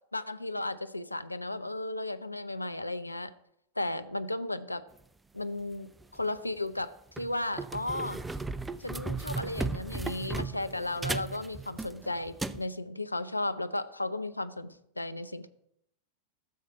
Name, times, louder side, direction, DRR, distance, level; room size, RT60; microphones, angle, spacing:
voice 1, 0.1-3.3 3.8-4.8 5.3-8.2 8.8-15.5, left 2 dB, 85° left, 11 dB, 0.6 m, -35 dB
sound 1, 6.0-6.2 6.8-6.9 7.2-12.6, right 3 dB, 10° right, 0.4 m, -36 dB
13.0 x 7.3 x 4.6 m, 0.74 s
figure-of-eight pair, 90°, 0 cm